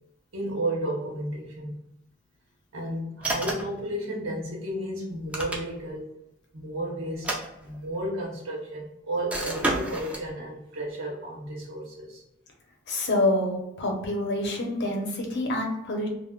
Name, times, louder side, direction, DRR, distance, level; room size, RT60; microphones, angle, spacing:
voice 1, 0.3-1.8 2.7-6.1 6.5-7.3 7.6-12.2, right 1 dB, 80° right, -3 dB, 0.8 m, -33 dB
sound 1, 3.2-3.8 5.1-6.0 7.1-8.1 9.3-10.3, right 1 dB, 5° right, 0.4 m, -31 dB
voice 2, 12.9-16.1, left 1 dB, 60° left, 1 dB, 0.7 m, -27 dB
2.2 x 2.0 x 3.5 m, 0.89 s
head